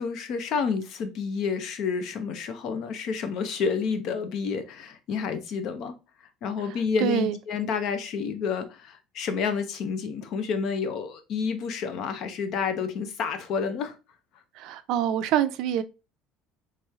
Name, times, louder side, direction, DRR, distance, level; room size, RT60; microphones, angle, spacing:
voice 1, 0.0-5.9 6.4-13.9, left 5 dB, 50° left, 0.7 m, -29 dB
voice 2, 6.6-7.4 14.5-15.8, right 10 dB, 60° right, 0.4 m, -26 dB
3.2 x 3.1 x 3.5 m
cardioid pair, 155°, 0 cm